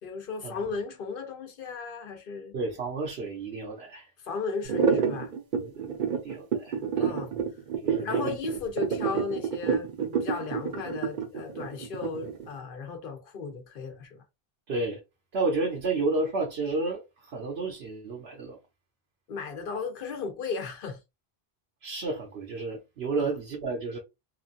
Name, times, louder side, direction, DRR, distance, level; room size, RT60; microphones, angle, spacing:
voice 1, 0.0-2.5 4.2-5.3 7.0-7.3 8.0-14.2 19.3-21.0 23.2-23.3, left 4 dB, 65° left, 0.8 m, -35 dB
voice 2, 2.5-4.1 5.6-7.5 7.8-8.7 14.7-15.0 15.3-18.6 21.8-24.0, right 3 dB, 85° right, 1.0 m, -32 dB
sound 1, 4.7-12.5, right 6 dB, 60° right, 0.8 m, -28 dB
3.0 x 2.3 x 2.4 m
omnidirectional pair, 1.0 m